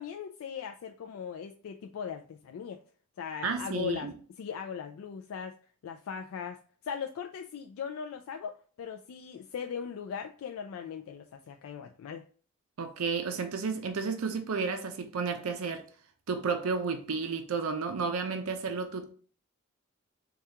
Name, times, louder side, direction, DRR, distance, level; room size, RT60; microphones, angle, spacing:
voice 1, 0.0-2.8 3.2-5.6 5.8-6.6 6.8-12.3, left 7 dB, 75° left, 0.3 m, -39 dB
voice 2, 3.4-4.1 12.8-15.9 16.3-19.1, right 5 dB, 85° right, 0.5 m, -32 dB
4.7 x 2.3 x 2.8 m
head